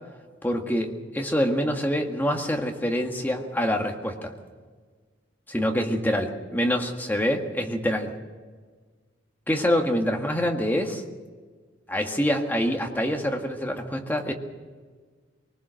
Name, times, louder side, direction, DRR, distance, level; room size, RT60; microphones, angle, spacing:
voice 1, 0.4-4.3 5.5-8.1 9.5-11.0 11.9-14.3, equal, 10° left, 2 dB, 1.8 m, -26 dB
23.5 x 19.5 x 6.4 m, 1.5 s
head